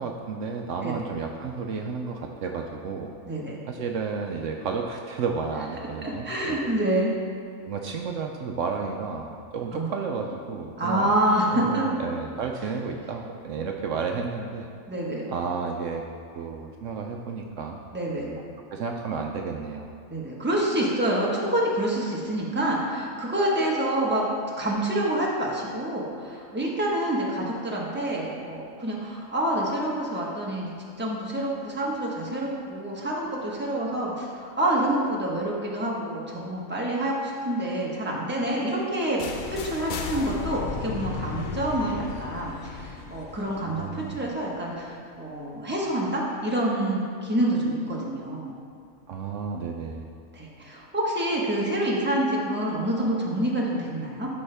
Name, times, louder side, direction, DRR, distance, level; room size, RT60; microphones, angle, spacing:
voice 1, 0.0-3.1 3.7-6.6 7.6-11.1 11.5-14.7 15.3-16.1 16.3-17.8 18.1-18.4 18.7-19.9 43.7-44.3 49.1-50.1, right 5 dB, 70° right, 2 dB, 0.9 m, -32 dB
voice 2, 3.2-3.6 6.0-7.1 9.7-9.9 10.8-11.9 14.9-15.3 17.9-18.3 20.1-24.3 24.6-48.5 50.3-54.3, right 1 dB, 10° right, -4 dB, 1.2 m, -27 dB
sound 1, 39.2-45.0, left 5 dB, 60° left, 0.5 m, -35 dB
12.5 x 5.5 x 3.4 m, 2.3 s
omnidirectional pair, 1.4 m